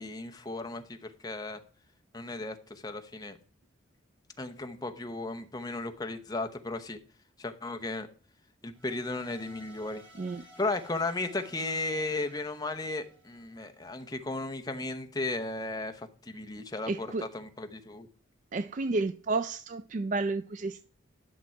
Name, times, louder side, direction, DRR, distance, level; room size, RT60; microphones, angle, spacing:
voice 1, 0.0-1.6 2.1-3.4 4.4-7.0 7.4-8.1 8.6-10.0 10.6-18.1, left 2 dB, 20° left, 0.9 m, -35 dB
sound 1, 8.7-14.0, equal, 70° right, 3.0 m, -56 dB
voice 2, 16.9-17.2 18.5-20.8, right 3 dB, 40° right, 0.3 m, -31 dB
11.0 x 6.1 x 4.4 m
head